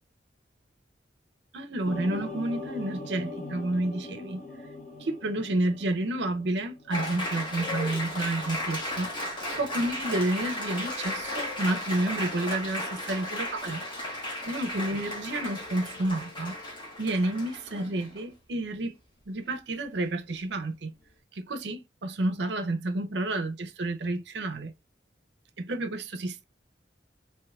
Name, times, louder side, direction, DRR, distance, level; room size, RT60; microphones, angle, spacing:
voice 1, 1.5-4.4 5.0-9.1 9.6-13.8 14.5-16.6 17.0-18.9 19.3-20.9 21.3-24.7 25.6-26.4, right 2 dB, 70° right, 0.6 m, -30 dB
sound 1, 1.8-7.1 7.4-7.8, left 2 dB, 40° left, 0.7 m, -40 dB
Applause, 6.9-18.2, left 1 dB, 25° left, 1.1 m, -35 dB
3.2 x 3.0 x 2.2 m
head